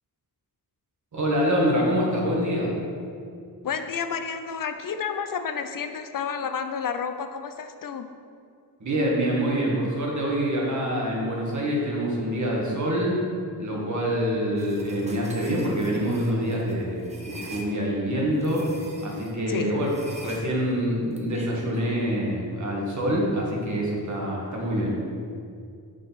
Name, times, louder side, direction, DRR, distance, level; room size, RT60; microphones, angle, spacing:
voice 1, 1.1-2.7 8.8-13.2 13.6-18.7 19.0-19.9 20.2-25.0, equal, 50° right, -3 dB, 1.6 m, -26 dB
voice 2, 3.6-8.1 19.5-19.8, left 6 dB, 65° left, 8 dB, 0.5 m, -30 dB
sound 1, 14.6-17.7 18.4-19.3 19.8-21.8, right 1 dB, 20° right, 0.8 m, -44 dB
6.5 x 6.5 x 4.1 m, 2.4 s
wide cardioid pair, 130°, 37 cm